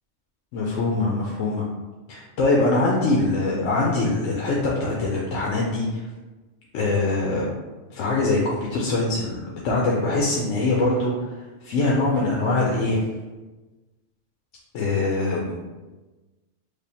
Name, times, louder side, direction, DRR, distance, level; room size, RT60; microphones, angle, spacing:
voice 1, 0.5-1.6 2.1-6.1 6.7-7.5 7.9-11.1 11.6-13.0 14.7-15.6, left 2 dB, 85° left, -4 dB, 1.0 m, -23 dB
3.3 x 2.2 x 4.2 m, 1.2 s
omnidirectional pair, 1.3 m